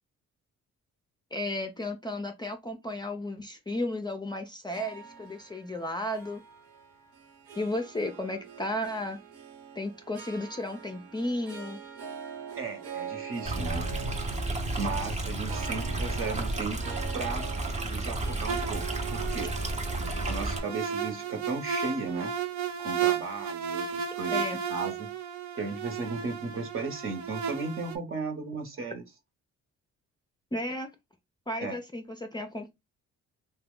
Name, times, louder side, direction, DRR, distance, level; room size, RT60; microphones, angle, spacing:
voice 1, 1.3-6.4 7.6-9.2 9.8-11.8 24.3-24.6 30.5-30.9 31.5-32.7, left 1 dB, 15° left, 0.5 m, -34 dB
Harp, 4.7-23.1, right 7 dB, 90° right, 1.1 m, -45 dB
voice 2, 12.5-13.9 14.8-17.5 17.8-19.5 20.2-22.3 22.8-24.4 24.7-25.1 25.5-29.0 31.6-31.8, right 3 dB, 45° right, 1.1 m, -35 dB
Stream, 13.5-20.6, right 2 dB, 25° right, 0.7 m, -32 dB
sound 1, 18.5-28.0, right 8 dB, 65° right, 0.6 m, -34 dB
2.8 x 2.2 x 3.6 m
cardioid pair, 90°, 30 cm